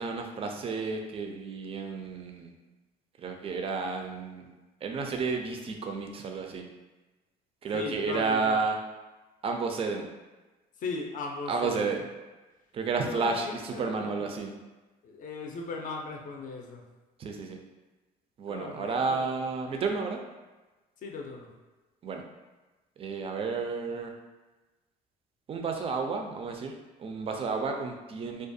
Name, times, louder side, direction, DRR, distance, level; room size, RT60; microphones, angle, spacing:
voice 1, 0.0-2.5 3.2-4.5 4.8-6.6 7.6-8.8 9.4-10.1 11.5-12.1 12.7-14.5 17.2-17.6 18.4-20.2 22.0-22.2 23.0-24.1 25.5-26.7 27.0-28.5, right 4 dB, 35° right, 3 dB, 0.4 m, -31 dB
voice 2, 7.7-8.6 10.8-11.9 13.1-14.5 15.0-16.8 18.5-19.5 21.0-21.5, left 4 dB, 50° left, 1 dB, 0.5 m, -38 dB
2.4 x 2.2 x 2.6 m, 1.2 s
cardioid pair, 110°, 17 cm